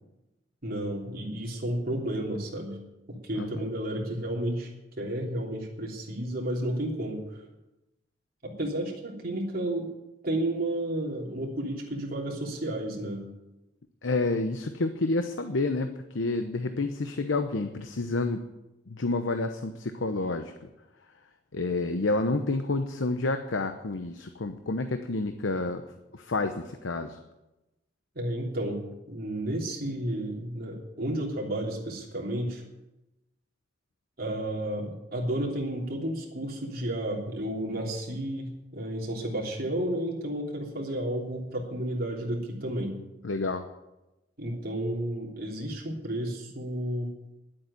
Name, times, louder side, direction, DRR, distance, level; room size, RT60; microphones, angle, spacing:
voice 1, 0.6-2.8 3.1-4.7 5.0-7.4 8.4-9.9 10.2-13.2 28.1-32.6 34.2-43.0 44.4-47.1, right 1 dB, 50° right, -1 dB, 3.2 m, -32 dB
voice 2, 14.0-18.4 18.9-20.5 21.5-25.8 26.1-27.2 43.2-43.7, left 2 dB, 85° left, 8 dB, 0.8 m, -29 dB
11.0 x 8.6 x 9.9 m, 0.99 s
head